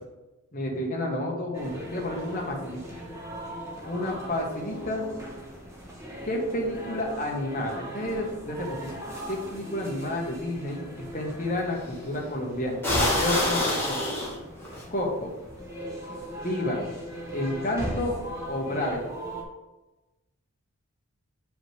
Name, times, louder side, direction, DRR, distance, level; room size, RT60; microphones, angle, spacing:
voice 1, 0.5-2.8 3.9-5.1 6.2-8.9 9.3-12.8 13.2-14.0 14.9-15.3 16.4-16.9 17.3-18.2 18.5-19.0, left 1 dB, 40° left, -1 dB, 1.3 m, -30 dB
sound 1, 1.5-19.4, right 1 dB, 15° right, 1.0 m, -39 dB
sound 2, 9.5-9.6 11.8-12.1 12.8-14.8, left 1 dB, 10° left, 1.6 m, -26 dB
8.1 x 5.0 x 3.3 m, 1.1 s
head